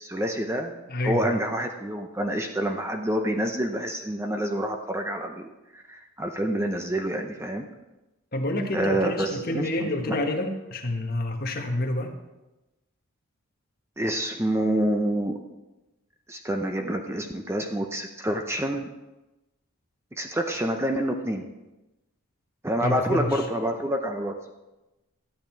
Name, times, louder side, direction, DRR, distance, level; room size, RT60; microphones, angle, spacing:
voice 1, 0.0-7.6 8.7-10.2 14.0-15.4 16.3-18.9 20.2-21.4 22.6-24.5, right 1 dB, 10° right, 4 dB, 0.6 m, -28 dB
voice 2, 0.9-1.3 8.3-12.1 22.8-23.5, left 1 dB, 45° left, 2 dB, 1.4 m, -28 dB
13.5 x 9.0 x 4.5 m, 1.0 s
head